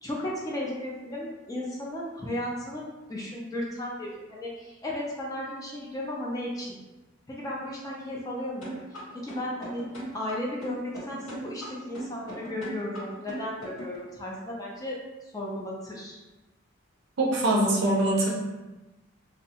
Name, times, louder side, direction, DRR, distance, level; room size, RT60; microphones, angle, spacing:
voice 1, 0.0-6.8 7.3-8.8 9.1-9.9 10.1-16.2, left 1 dB, 15° left, -4 dB, 0.3 m, -35 dB
sound 1, 8.6-14.0, right 1 dB, 90° left, 1.3 m, -39 dB
voice 2, 17.2-18.3, right 1 dB, 55° right, -3 dB, 0.5 m, -23 dB
2.6 x 2.0 x 2.8 m, 1.1 s
head